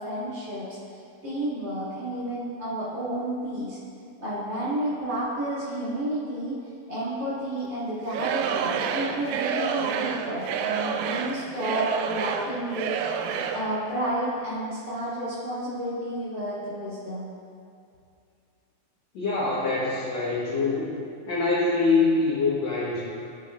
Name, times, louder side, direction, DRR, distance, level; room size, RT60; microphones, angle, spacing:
voice 1, 0.0-3.8 4.2-6.6 6.9-17.3, right 1 dB, 25° right, -12 dB, 1.5 m, -31 dB
Singing / Crowd, 8.1-13.7, right 7 dB, 90° right, 1.9 m, -29 dB
voice 2, 19.1-20.9 21.3-23.2, left 3 dB, 65° left, -7 dB, 1.8 m, -24 dB
14.0 x 7.5 x 2.5 m, 2.4 s
omnidirectional pair, 4.5 m